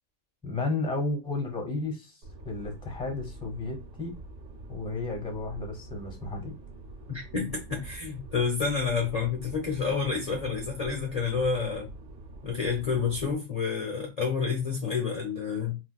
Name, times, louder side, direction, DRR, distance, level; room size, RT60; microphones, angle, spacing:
voice 1, 0.4-2.2 2.4-4.2 4.7-6.5, left 3 dB, 5° left, 0.8 m, -33 dB
sound 1, 2.2-13.3, right 2 dB, 80° right, 1.2 m, -45 dB
voice 2, 7.1-11.9 12.4-15.8, left 5 dB, 40° left, 0.6 m, -29 dB
3.8 x 2.3 x 2.2 m
omnidirectional pair, 1.3 m